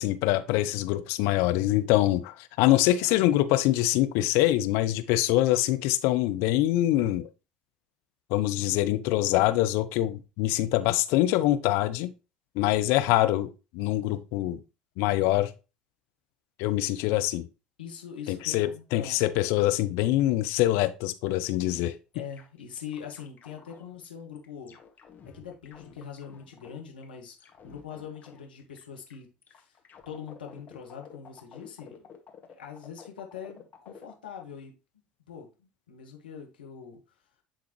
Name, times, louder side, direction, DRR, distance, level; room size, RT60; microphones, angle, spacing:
voice 1, 0.0-7.3 8.3-12.1 12.6-14.6 15.0-15.5 16.6-17.4 18.3-22.0, left 15 dB, 65° left, 0.7 m, -24 dB
voice 2, 17.8-19.2 22.1-24.8 25.2-29.8 30.0-32.0 32.5-34.7 35.3-37.0, left 7 dB, 85° left, 1.5 m, -43 dB
sound 1, 21.3-21.4 21.8-21.9 22.1-24.1 24.4-27.0 27.4-29.1 29.4-34.1, left 7 dB, 40° left, 1.9 m, -51 dB
10.0 x 3.9 x 3.1 m
hypercardioid pair, 70°, 5 cm